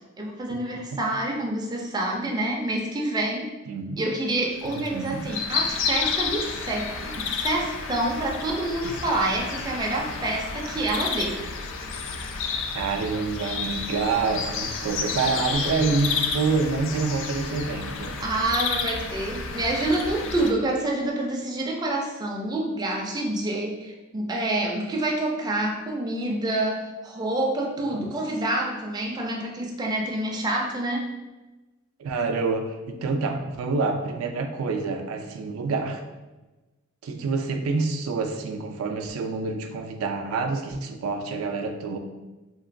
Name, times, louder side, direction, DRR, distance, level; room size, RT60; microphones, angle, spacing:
voice 1, 0.2-3.5 4.0-11.4 18.2-31.1, right 1 dB, 20° right, -1 dB, 0.4 m, -27 dB
voice 2, 3.7-4.0 4.8-5.3 12.7-18.2 27.9-28.1 32.0-36.0 37.0-42.0, right 4 dB, 85° right, 5 dB, 0.4 m, -27 dB
sound 1, 4.6-20.5, left 5 dB, 65° left, 0.3 m, -31 dB
2.9 x 2.9 x 2.5 m, 1.1 s
head